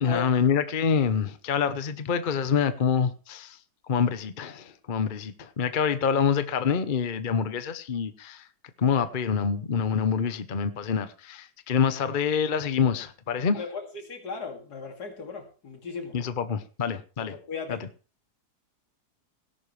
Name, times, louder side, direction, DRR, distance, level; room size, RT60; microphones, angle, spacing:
voice 1, 0.0-3.6 3.9-8.4 8.8-13.6 16.1-17.4 17.7-17.8, left 6 dB, 40° left, 0.9 m, -26 dB
voice 2, 13.5-16.2 17.2-17.9, left 4 dB, 80° left, 3.0 m, -37 dB
18.0 x 11.0 x 3.3 m
omnidirectional pair, 1.7 m